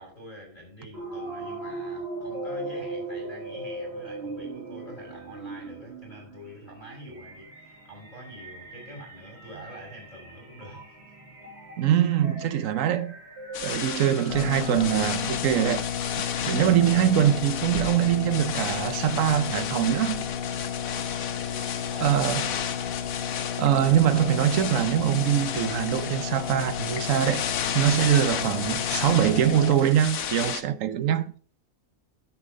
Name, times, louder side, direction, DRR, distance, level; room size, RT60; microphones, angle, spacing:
voice 1, 0.0-11.5 21.3-22.2, equal, 35° left, 6.0 m, -46 dB
sound 1, 0.9-15.5, right 2 dB, 50° right, 2.3 m, -39 dB
voice 2, 11.8-13.1 13.6-15.9 16.5-20.3 22.0-22.5 23.6-27.5 27.7-31.3, right 10 dB, 70° right, 1.1 m, -23 dB
sound 2, 13.5-30.6, left 8 dB, 80° left, 1.3 m, -33 dB
sound 3, 14.3-29.8, left 8 dB, 55° left, 0.7 m, -33 dB
9.8 x 7.5 x 3.7 m
omnidirectional pair, 1.5 m